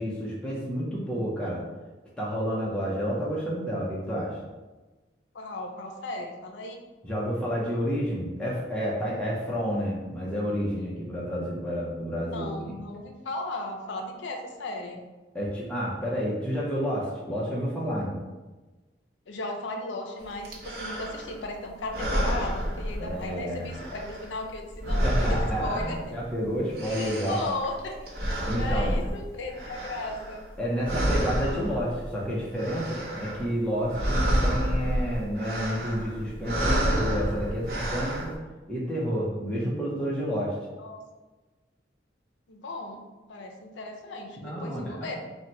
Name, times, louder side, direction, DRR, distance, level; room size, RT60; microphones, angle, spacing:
voice 1, 0.0-1.6 2.2-4.4 7.0-12.8 15.3-18.2 23.0-23.7 24.8-27.4 28.4-29.0 30.6-38.3 38.7-40.6 44.4-45.2, equal, 5° left, -6 dB, 0.5 m, -30 dB
voice 2, 5.3-6.8 12.2-15.0 19.3-26.2 26.8-28.0 28.4-30.4 40.8-41.0 42.5-45.2, left 2 dB, 80° left, 3 dB, 0.5 m, -36 dB
sound 1, 20.4-21.4 21.8-23.4 23.6-26.3 26.6-30.6 30.8-32.1 32.4-33.5 33.8-38.3, equal, 55° right, 0.7 m, -29 dB
2.8 x 2.1 x 4.0 m, 1.2 s
head